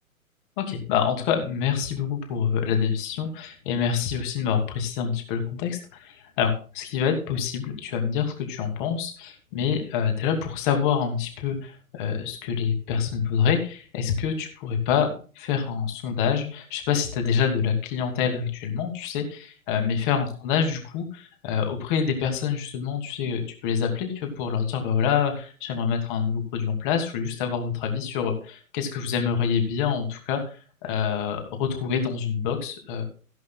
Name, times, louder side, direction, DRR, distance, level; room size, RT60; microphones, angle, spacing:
voice 1, 0.6-33.0, left 7 dB, 35° left, 5 dB, 2.8 m, -26 dB
15.5 x 11.0 x 2.4 m, 0.37 s
figure-of-eight pair, 115°, 43 cm